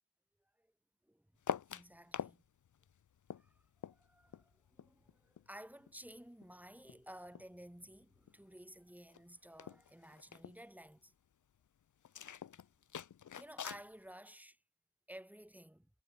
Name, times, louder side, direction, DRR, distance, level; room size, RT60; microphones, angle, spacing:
sound 1, 1.4-2.4 2.7-5.5 5.8-7.6 7.8-8.4 8.7-8.8 9.0-9.2 9.5-10.6 12.0-13.9, left 9 dB, 75° left, 3.3 m, -45 dB
voice 1, 1.7-2.4 3.3-3.5 3.8-11.1 13.4-14.6 15.1-15.9, right 1 dB, 5° right, 7.4 m, -54 dB
cardioid pair, 55°, 31 cm